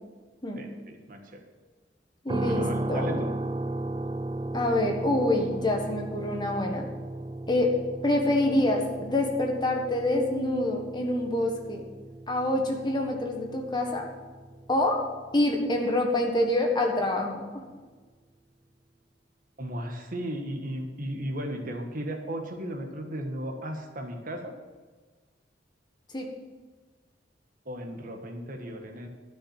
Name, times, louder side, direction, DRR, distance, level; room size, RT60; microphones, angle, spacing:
voice 1, 0.6-1.4 2.4-3.3 19.6-24.5 27.6-29.1, equal, 50° right, 3 dB, 1.5 m, -35 dB
voice 2, 2.2-3.2 4.5-6.9 7.5-7.7 8.0-11.8 12.3-14.0 14.7-15.0 15.3-17.6 26.1-26.3, left 1 dB, 25° left, 2 dB, 1.5 m, -26 dB
sound 1, 2.3-16.3, right 2 dB, 25° right, 0.4 m, -36 dB
11.5 x 6.2 x 7.4 m, 1.4 s
head